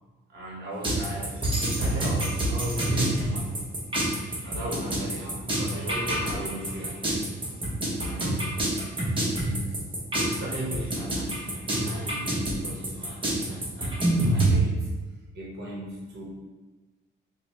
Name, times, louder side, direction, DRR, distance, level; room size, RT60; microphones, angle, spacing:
voice 1, 0.3-3.5 4.4-7.2 8.0-8.6 9.4-9.8 10.1-14.9 15.3-16.2, equal, 55° right, -3 dB, 0.9 m, -36 dB
sound 1, 0.8-14.5, right 1 dB, 25° right, 0.9 m, -27 dB
4.1 x 2.1 x 3.1 m, 1.3 s
cardioid pair, 90°, 20 cm